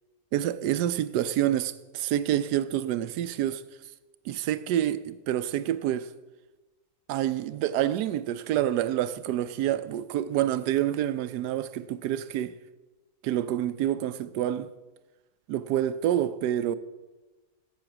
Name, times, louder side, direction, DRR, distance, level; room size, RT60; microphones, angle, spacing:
voice 1, 0.3-3.6 4.3-6.1 7.1-12.5 13.2-14.7 15.5-16.8, right 12 dB, 90° right, 1.2 m, -27 dB
11.5 x 7.1 x 5.9 m
omnidirectional pair, 1.7 m